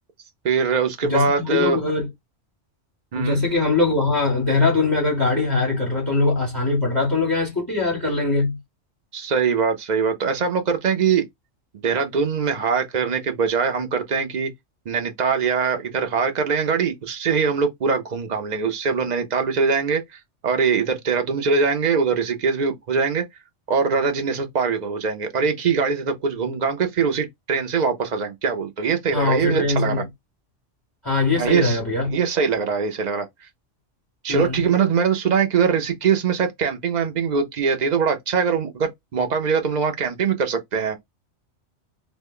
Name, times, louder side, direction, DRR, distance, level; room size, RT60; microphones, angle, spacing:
voice 1, 0.4-1.8 3.1-3.4 9.1-11.2 11.8-14.5 14.9-20.0 20.4-23.2 23.7-30.0 31.3-31.8 32.1-33.3 34.2-41.0, right 5 dB, 50° right, 0.5 m, -22 dB
voice 2, 1.0-2.1 3.1-8.6 29.1-30.0 31.0-32.2 34.3-34.6, left 3 dB, 20° left, 1.1 m, -22 dB
2.9 x 2.1 x 3.6 m
omnidirectional pair, 1.3 m